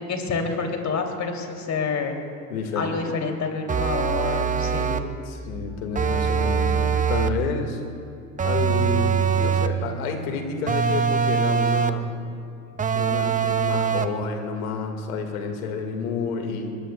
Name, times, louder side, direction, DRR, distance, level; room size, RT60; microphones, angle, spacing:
voice 1, 0.1-2.1 2.8-5.1, left 4 dB, 40° left, 2 dB, 2.8 m, -28 dB
voice 2, 2.5-3.1 5.3-7.8 8.4-12.1 12.9-16.8, left 5 dB, 85° left, 5 dB, 1.9 m, -30 dB
sound 1, 3.7-5.2 6.0-7.5 8.4-9.9 10.7-12.1 12.8-14.2, right 7 dB, 20° right, 0.7 m, -23 dB
21.5 x 20.5 x 2.3 m, 2.7 s
hypercardioid pair, 80°, 41 cm